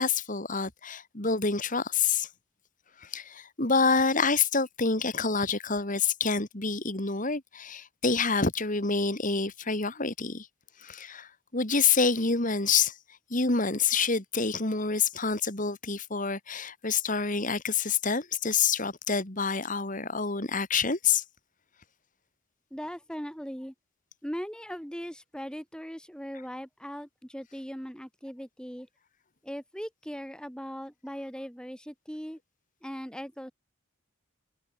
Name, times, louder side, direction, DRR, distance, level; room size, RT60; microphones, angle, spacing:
voice 1, 0.0-2.3 3.0-10.5 10.8-12.9 13.3-21.2, left 5 dB, 40° left, 2.4 m, -27 dB
voice 2, 22.7-23.7 24.2-28.9 29.4-32.4 32.8-33.5, equal, 5° left, 7.4 m, -39 dB
head